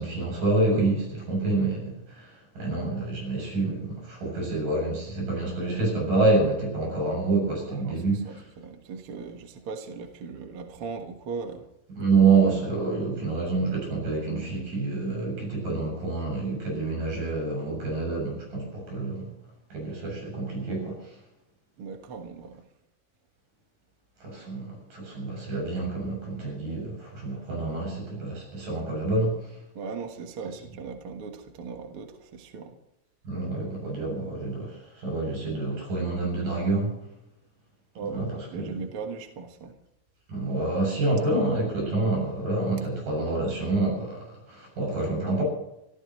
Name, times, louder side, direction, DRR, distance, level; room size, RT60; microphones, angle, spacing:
voice 1, 0.0-8.4 11.9-19.3 19.7-21.1 24.2-29.5 30.5-30.6 33.2-36.9 38.1-38.8 40.3-45.4, right 3 dB, 75° right, 0 dB, 9.3 m, -27 dB
voice 2, 8.3-11.6 21.8-22.5 29.8-32.7 38.0-38.3 38.5-39.7, right 5 dB, 50° right, 4 dB, 2.0 m, -38 dB
25.5 x 15.5 x 3.1 m, 0.87 s
omnidirectional pair, 3.9 m